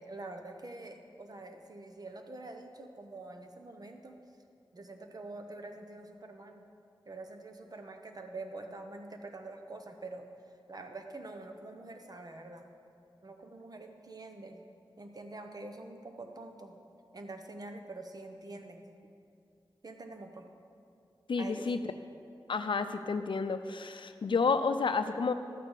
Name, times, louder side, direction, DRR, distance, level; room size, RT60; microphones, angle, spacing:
voice 1, 0.0-4.2 4.7-6.6 7.0-12.7 13.2-14.6 15.0-16.8 17.1-18.8 19.8-20.5 21.4-21.7, right 2 dB, 45° right, 5 dB, 1.0 m, -46 dB
voice 2, 21.3-21.8 22.5-25.3, left 4 dB, 70° left, 9 dB, 0.6 m, -30 dB
12.0 x 8.7 x 4.8 m, 2.4 s
cardioid pair, 60°, 9 cm